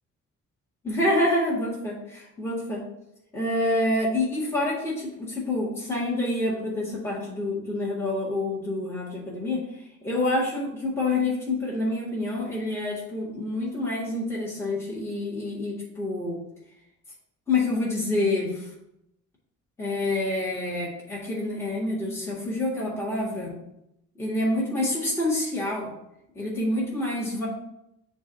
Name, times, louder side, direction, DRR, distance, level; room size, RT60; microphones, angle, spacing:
voice 1, 0.8-2.8 3.3-16.4 17.5-18.7 19.8-23.6 24.2-25.9 26.4-27.5, left 2 dB, 10° left, -6 dB, 1.8 m, -27 dB
6.9 x 2.6 x 5.6 m, 0.83 s
cardioid pair, 90°, 30 cm